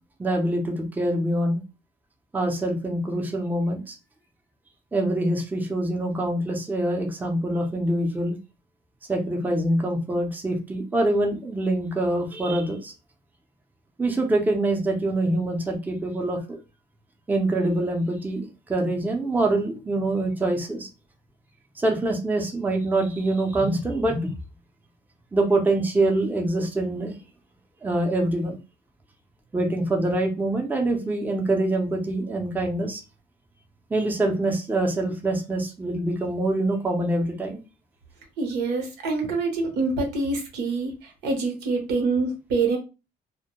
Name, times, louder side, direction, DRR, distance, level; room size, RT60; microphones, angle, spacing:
voice 1, 0.2-1.6 2.3-4.0 4.9-8.3 9.1-12.9 14.0-16.6 17.3-20.9 21.8-24.3 25.3-27.1 27.8-28.6 29.5-33.0 33.9-37.6, right 1 dB, 10° right, 3 dB, 0.5 m, -25 dB
voice 2, 38.4-42.8, right 3 dB, 90° right, 2 dB, 0.8 m, -26 dB
2.1 x 2.1 x 2.9 m, 0.29 s
cardioid pair, 110°, 17 cm